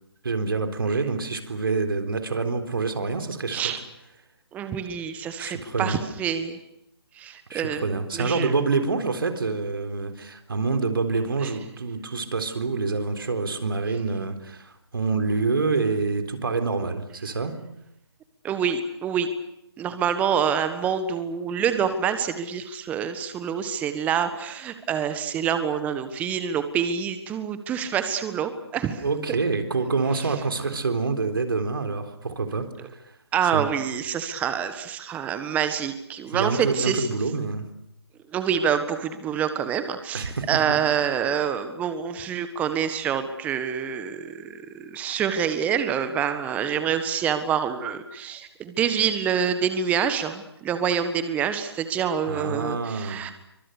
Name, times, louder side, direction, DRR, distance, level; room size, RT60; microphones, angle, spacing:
voice 1, 0.2-3.6 5.4-6.0 7.5-17.6 29.0-33.0 33.5-33.7 36.3-37.7 40.1-40.8 52.3-53.2, right 4 dB, 60° right, 6 dB, 3.9 m, -27 dB
voice 2, 4.5-6.6 7.1-7.8 8.1-8.5 11.4-11.5 18.4-19.3 19.8-29.0 33.3-37.1 38.3-53.3, right 8 dB, 10° right, 10 dB, 1.5 m, -26 dB
28.0 x 25.0 x 6.8 m, 0.81 s
figure-of-eight pair, 145°, 13 cm